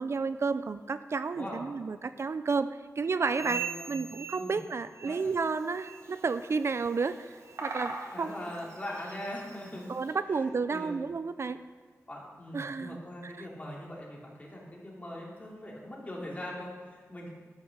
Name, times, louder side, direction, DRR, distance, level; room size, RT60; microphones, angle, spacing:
voice 1, 0.0-2.7 3.0-3.6 3.9-8.4 9.9-11.6 12.5-13.0 13.2-13.5, right 4 dB, 55° right, 12 dB, 0.4 m, -31 dB
voice 2, 1.3-1.6 3.4-4.0 4.3-4.6 5.0-5.2 8.1-9.9 10.3-11.0 12.1-17.3, left 1 dB, 30° left, -4 dB, 2.8 m, -41 dB
sound 1, 3.2-5.5 5.7-6.1 6.6-6.8 7.4-7.6 8.3-8.4 9.1-9.2, right 6 dB, 90° right, 2.1 m, -41 dB
Bird vocalization bird call bird song, 5.1-10.1, right 2 dB, 70° right, 1.5 m, -45 dB
12.0 x 6.4 x 6.6 m, 1.5 s
wide cardioid pair, 115°, 6 cm